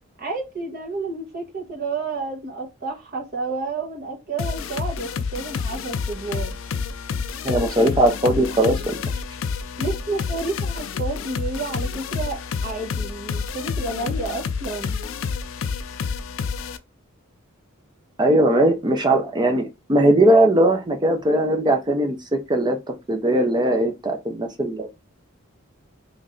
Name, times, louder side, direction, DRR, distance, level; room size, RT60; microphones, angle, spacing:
voice 1, 0.2-6.5 9.8-15.0, right 3 dB, 45° right, 1.0 m, -30 dB
sound 1, 4.4-16.8, left 5 dB, 65° left, 0.4 m, -29 dB
voice 2, 7.4-8.9 18.2-24.9, right 1 dB, 20° right, 0.5 m, -19 dB
3.1 x 2.6 x 3.7 m
head